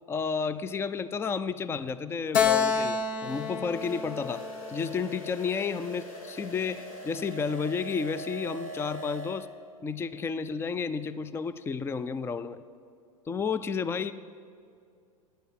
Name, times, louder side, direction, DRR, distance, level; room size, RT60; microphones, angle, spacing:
voice 1, 0.1-9.5 9.8-12.6 13.3-14.1, left 5 dB, 15° left, 15 dB, 0.4 m, -32 dB
Keyboard (musical), 2.3-5.8, left 6 dB, 60° left, 1.2 m, -29 dB
sound 1, 3.2-9.4, right 1 dB, 75° left, 3.5 m, -42 dB
14.0 x 10.0 x 7.4 m, 2.4 s
hypercardioid pair, 95°, 18 cm